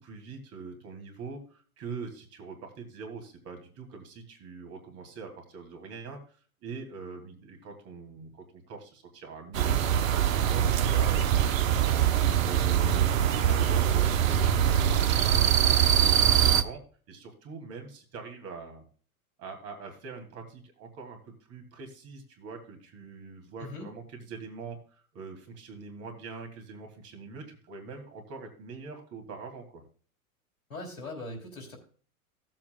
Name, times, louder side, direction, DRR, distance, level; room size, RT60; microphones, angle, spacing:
voice 1, 0.0-6.2 6.6-12.0 12.4-13.1 13.4-16.8 17.1-18.8 19.4-24.8 25.1-29.8, right 4 dB, 35° right, 4 dB, 2.6 m, -43 dB
sound 1, 9.5-16.6, right 9 dB, 65° right, 0.9 m, -23 dB
voice 2, 30.7-31.8, left 2 dB, 75° left, 3 dB, 3.4 m, -40 dB
16.0 x 7.6 x 2.3 m, 0.41 s
figure-of-eight pair, 95°, 43 cm